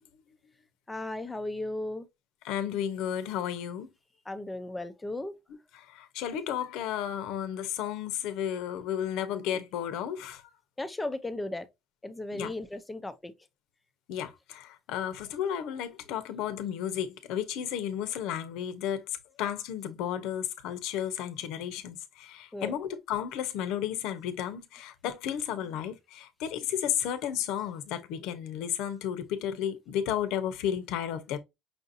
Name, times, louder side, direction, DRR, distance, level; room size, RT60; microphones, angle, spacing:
voice 1, 0.9-2.1 4.3-5.3 10.8-11.6 12.0-13.3 22.5-22.7, left 2 dB, 10° left, 0.6 m, -35 dB
voice 2, 2.4-3.9 5.7-10.4 12.3-12.5 14.1-19.0 19.4-31.4, left 9 dB, 80° left, 0.8 m, -33 dB
5.6 x 2.6 x 2.7 m
cardioid pair, 125°, 0 cm